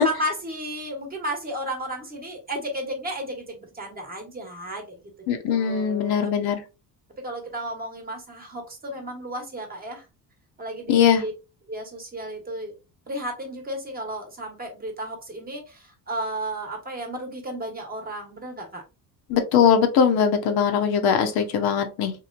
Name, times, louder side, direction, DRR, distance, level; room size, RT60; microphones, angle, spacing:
voice 1, 0.0-5.0 5.5-6.3 7.2-10.0 10.6-11.3 11.7-12.7 13.1-18.8, right 1 dB, 25° right, 3 dB, 1.0 m, -33 dB
voice 2, 5.3-6.6 10.9-11.2 19.3-22.1, left 7 dB, 70° left, 6 dB, 0.8 m, -20 dB
3.0 x 2.7 x 2.5 m, 0.29 s
cardioid pair, 125°, 38 cm